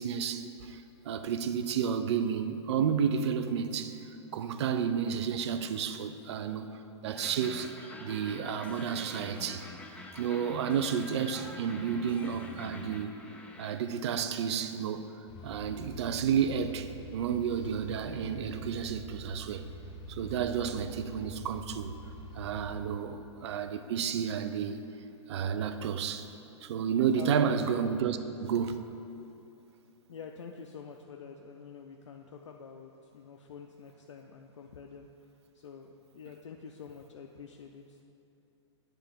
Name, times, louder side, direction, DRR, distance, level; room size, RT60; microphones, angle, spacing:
voice 1, 0.0-4.0 4.3-7.7 8.0-9.7 10.2-13.2 13.6-15.1 15.4-19.6 20.1-21.9 22.3-24.8 25.3-26.3 26.6-28.8, right 7 dB, 65° right, 0.5 m, -31 dB
sound 1, 7.2-13.7, left 2 dB, 10° left, 0.4 m, -46 dB
sound 2, 15.3-22.8, equal, 30° left, 0.9 m, -45 dB
voice 2, 27.1-27.5 30.1-35.1 35.5-38.0, left 6 dB, 85° left, 0.4 m, -47 dB
8.2 x 3.4 x 5.8 m
hypercardioid pair, 115°, 15 cm